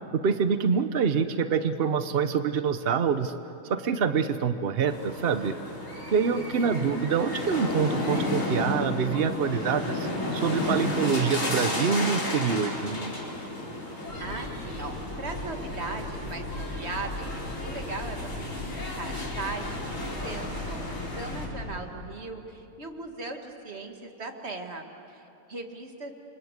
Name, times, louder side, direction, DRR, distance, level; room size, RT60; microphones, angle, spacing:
voice 1, 0.1-3.3 3.7-5.5 6.1-13.2, right 6 dB, 80° right, 10 dB, 0.5 m, -26 dB
sound 1, 4.9-21.5, left 2 dB, 35° left, 4.7 m, -33 dB
voice 2, 6.5-7.0 14.2-17.3 17.6-26.1, right 3 dB, 30° right, 4 dB, 2.0 m, -39 dB
sound 2, 14.1-21.8, left 1 dB, 65° left, 4.4 m, -38 dB
28.5 x 25.5 x 8.1 m, 2.9 s
omnidirectional pair, 2.3 m